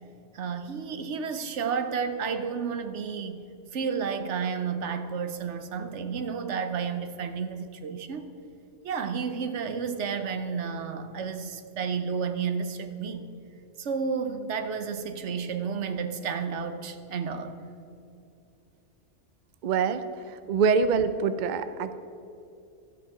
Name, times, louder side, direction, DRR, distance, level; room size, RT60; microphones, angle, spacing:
voice 1, 0.3-3.5 3.7-8.3 8.8-13.3 13.8-17.5, right 6 dB, 85° right, 9 dB, 1.1 m, -31 dB
voice 2, 19.6-21.9, right 5 dB, 55° right, 11 dB, 0.6 m, -25 dB
13.0 x 8.2 x 5.8 m, 2.6 s
omnidirectional pair, 1.2 m